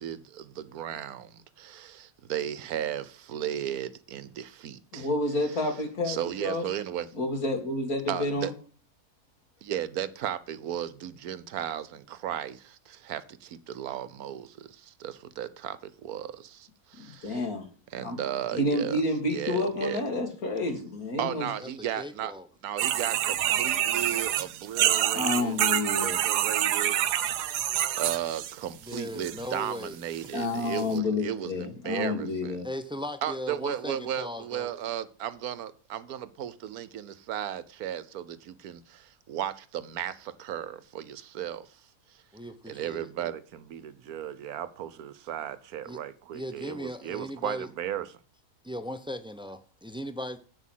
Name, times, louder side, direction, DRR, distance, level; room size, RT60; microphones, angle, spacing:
voice 1, 0.0-5.1 5.5-5.6 6.0-7.1 8.1-8.5 9.6-17.4 17.9-19.0 19.3-20.0 21.2-22.3 22.6-27.0 28.0-32.6 33.2-42.2 42.7-48.1, right 10 dB, 70° right, 1.3 m, -35 dB
voice 2, 4.9-6.6 7.1-8.5 17.0-17.7 18.0-18.2 18.5-21.5 25.1-26.2 26.7-26.8 30.3-32.7, left 2 dB, 65° left, 2.7 m, -29 dB
voice 3, 22.0-22.5 28.9-30.0 32.6-34.7 42.3-43.1 45.9-46.0 46.3-47.7 48.6-50.4, equal, 5° right, 0.4 m, -37 dB
sound 1, 22.8-28.5 28.9-29.4 30.1-30.2 30.8-30.9, right 12 dB, 90° right, 1.3 m, -27 dB
8.8 x 6.3 x 7.3 m
omnidirectional pair, 1.7 m